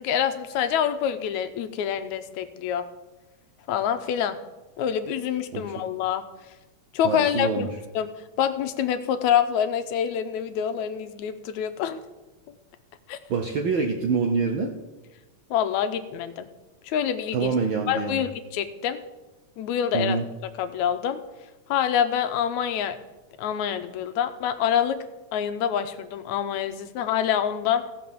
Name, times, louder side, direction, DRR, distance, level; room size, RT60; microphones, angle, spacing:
voice 1, 0.0-2.8 3.7-4.4 4.8-6.2 6.9-7.7 8.0-8.1 8.4-12.0 13.1-13.2 15.5-16.5 16.8-17.5 17.9-19.0 19.6-20.2 20.6-21.2 21.7-23.0 23.4-25.0 25.3-27.8, left 9 dB, 80° left, 10 dB, 2.1 m, -26 dB
voice 2, 7.0-7.7 13.3-14.7 17.3-18.3 19.9-20.3, right 5 dB, 70° right, 4 dB, 1.1 m, -25 dB
15.5 x 5.8 x 7.0 m, 1.1 s
omnidirectional pair, 3.3 m